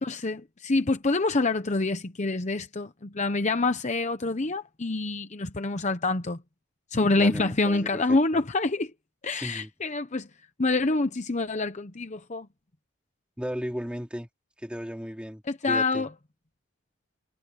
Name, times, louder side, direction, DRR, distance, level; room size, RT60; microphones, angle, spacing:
voice 1, 0.0-6.4 6.9-8.9 9.2-10.3 10.6-12.5 15.5-16.1, left 3 dB, 35° left, 0.9 m, -26 dB
voice 2, 7.1-8.2 9.3-9.7 13.4-14.3 14.6-16.0, equal, 5° right, 4.0 m, -35 dB
head